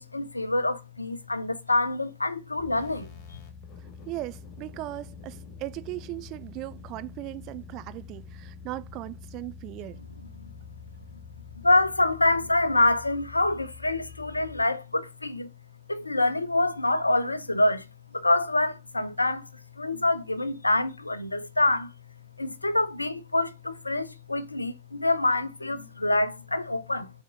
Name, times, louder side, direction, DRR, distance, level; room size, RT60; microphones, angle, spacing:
voice 1, 0.0-3.4 10.4-10.5 11.6-15.5 15.9-17.8 18.1-19.5 19.8-21.9 22.4-27.1, left 2 dB, 85° left, 0.5 m, -26 dB
sound 1, 2.6-14.7, left 5 dB, 35° left, 1.3 m, -46 dB
voice 2, 4.1-10.0, right 18 dB, 40° right, 0.3 m, -38 dB
6.5 x 3.5 x 5.1 m
figure-of-eight pair, 90°, 0 cm